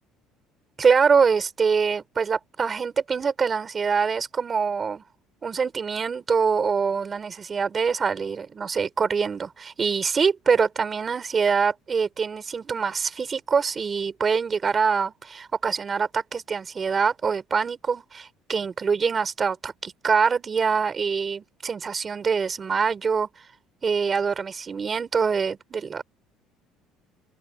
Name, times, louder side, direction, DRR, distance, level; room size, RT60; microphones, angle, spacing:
voice 1, 0.8-5.0 5.4-23.3 23.8-26.0, right 5 dB, 30° right, 4.0 m, -24 dB
open air
cardioid pair, 120°, 0 cm